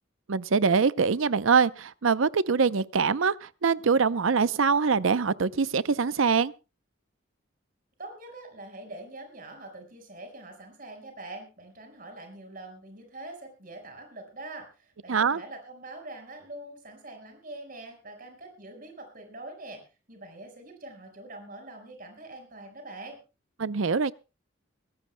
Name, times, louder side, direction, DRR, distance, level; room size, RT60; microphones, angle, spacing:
voice 1, 0.3-6.5 15.1-15.4 23.6-24.1, right 5 dB, 85° right, 0.6 m, -24 dB
voice 2, 8.0-19.8 20.1-23.2, right 2 dB, 45° right, 4.9 m, -44 dB
23.5 x 16.5 x 2.2 m
head